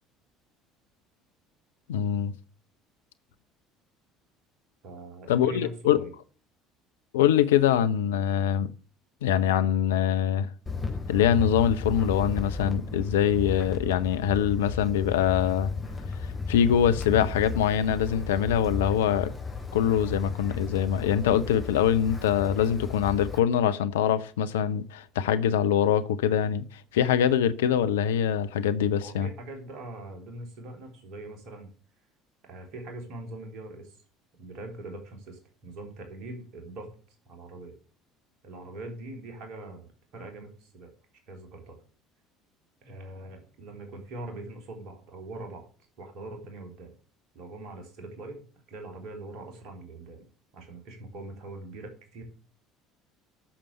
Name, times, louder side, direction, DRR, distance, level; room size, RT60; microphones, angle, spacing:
voice 1, 1.9-2.3 5.3-6.0 7.1-8.7 9.2-10.5 11.1-15.7 16.5-19.3 19.7-26.6 26.9-29.3, left 9 dB, 70° left, 0.7 m, -24 dB
voice 2, 4.8-6.1 29.0-31.7 32.5-34.0 34.4-36.9 37.3-37.8 38.4-40.9 41.3-41.8 42.8-45.7 46.0-46.9 47.3-48.4 48.7-50.2 50.5-52.2, right 2 dB, 55° right, 3.5 m, -42 dB
Wind, 10.7-23.4, left 4 dB, 20° left, 3.4 m, -34 dB
8.7 x 6.9 x 7.9 m
figure-of-eight pair, 60°, 0 cm